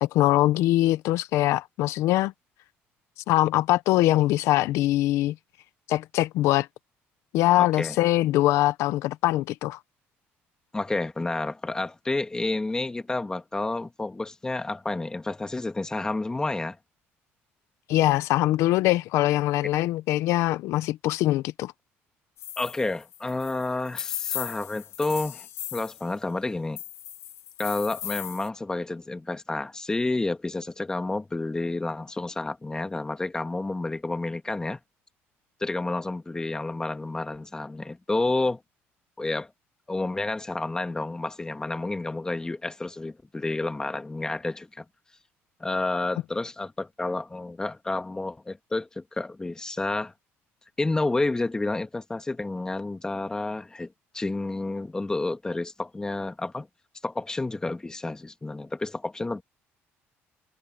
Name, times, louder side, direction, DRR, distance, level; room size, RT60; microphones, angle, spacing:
voice 1, 0.0-2.3 3.3-5.3 5.9-6.7 7.3-9.8 17.9-21.7, left 16 dB, 80° left, 0.7 m, -22 dB
voice 2, 7.6-8.0 10.7-16.8 22.6-26.8 27.6-34.8 35.6-38.6 39.2-39.5 39.9-44.8 45.6-50.1 50.8-56.7 57.0-59.4, left 2 dB, 15° left, 1.8 m, -30 dB
sound 1, 22.4-26.0 26.8-28.5, left 12 dB, 65° left, 1.0 m, -36 dB
cardioid pair, 110°, 5 cm